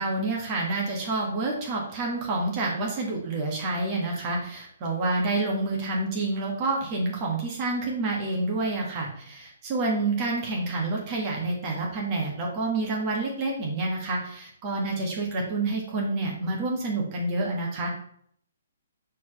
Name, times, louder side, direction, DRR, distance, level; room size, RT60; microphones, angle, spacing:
voice 1, 0.0-17.9, right 2 dB, 30° right, -2 dB, 1.6 m, -28 dB
4.7 x 4.2 x 5.5 m, 0.64 s
figure-of-eight pair, 130°, 0 cm